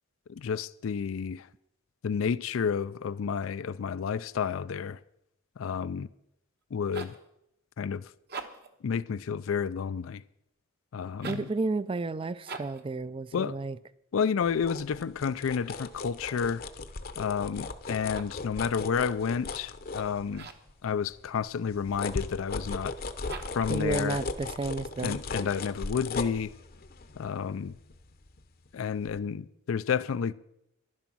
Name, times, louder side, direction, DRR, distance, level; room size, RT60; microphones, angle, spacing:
voice 1, 0.3-1.5 2.0-5.0 5.6-6.1 6.7-7.1 7.8-8.1 8.8-10.2 10.9-11.5 13.3-13.6 14.1-16.6 17.2-20.5 20.8-22.9 23.5-24.2 25.0-26.5 27.2-27.8 28.7-30.3, left 6 dB, 70° left, 0.4 m, -30 dB
sound 1, 6.6-7.3 8.2-8.8 11.1-11.6 12.4-12.9 17.9-18.5 20.3-20.8 23.2-23.8, right 4 dB, 50° right, 1.1 m, -43 dB
voice 2, 11.2-13.8 23.7-25.2, right 3 dB, 25° right, 0.4 m, -32 dB
sound 2, 14.4-20.7 21.1-28.7 29.0-29.2, left 3 dB, 45° left, 0.8 m, -38 dB
11.5 x 11.0 x 6.1 m
head